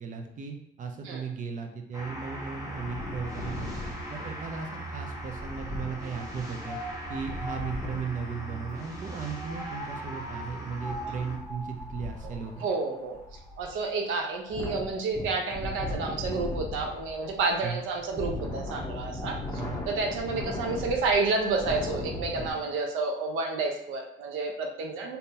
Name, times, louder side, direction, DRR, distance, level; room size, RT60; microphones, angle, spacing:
voice 1, 0.0-6.8 7.1-12.6 17.6-17.8 19.5-19.8, right 5 dB, 40° right, 4 dB, 0.5 m, -36 dB
sound 1, 1.9-11.4, right 1 dB, 20° right, 1.1 m, -40 dB
Wind, 2.8-8.2 9.2-22.5, left 1 dB, 15° left, 0.8 m, -38 dB
voice 2, 12.2-19.6 19.9-25.2, right 3 dB, 90° right, 2 dB, 0.6 m, -30 dB
3.6 x 2.7 x 2.7 m, 0.75 s
cardioid pair, 90°, 20 cm